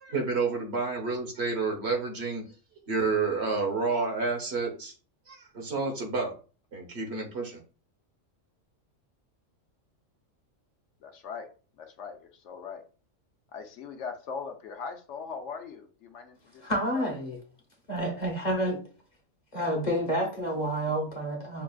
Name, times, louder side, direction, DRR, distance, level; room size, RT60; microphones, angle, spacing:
voice 1, 0.0-2.4 2.9-4.9 5.3-6.3 6.7-7.6, right 4 dB, 55° right, 1.2 m, -29 dB
voice 2, 11.0-11.5 11.8-12.8 13.5-16.6 16.9-17.1, left 5 dB, 70° left, 0.8 m, -40 dB
voice 3, 16.6-17.4 17.9-18.8 19.5-21.6, equal, 40° left, 0.9 m, -29 dB
5.8 x 2.3 x 2.3 m
omnidirectional pair, 1.3 m